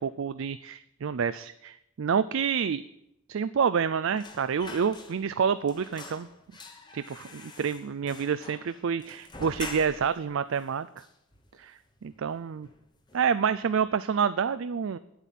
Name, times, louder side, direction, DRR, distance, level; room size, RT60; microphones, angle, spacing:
voice 1, 0.0-2.8 3.3-6.3 6.9-10.9 11.6-12.7 13.1-15.0, right 6 dB, 65° right, 13 dB, 0.4 m, -28 dB
sound 1, 4.2-5.4 5.7-10.2 10.6-10.7 11.0-11.8 12.1-12.3 12.6-13.3 13.6-13.8, left 3 dB, 20° left, 1.1 m, -45 dB
10.0 x 8.1 x 9.1 m, 0.83 s
head